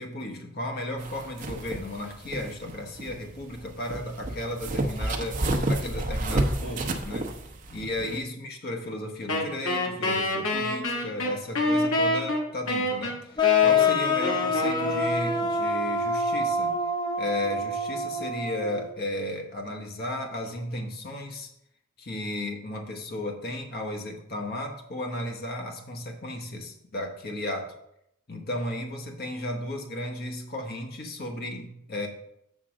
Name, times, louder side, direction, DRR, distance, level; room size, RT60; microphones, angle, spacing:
voice 1, 0.0-7.3 7.7-16.8 17.2-21.5 22.0-27.8 28.3-32.1, left 1 dB, 45° left, 3 dB, 1.0 m, -34 dB
sound 1, 1.0-8.2, right 1 dB, 40° right, 0.7 m, -31 dB
Wind instrument woodwind instrument, 9.3-15.6, left 1 dB, 85° left, 1.3 m, -27 dB
sound 2, 13.4-18.9, left 4 dB, 20° left, 0.5 m, -25 dB
7.4 x 3.7 x 6.2 m, 0.77 s
head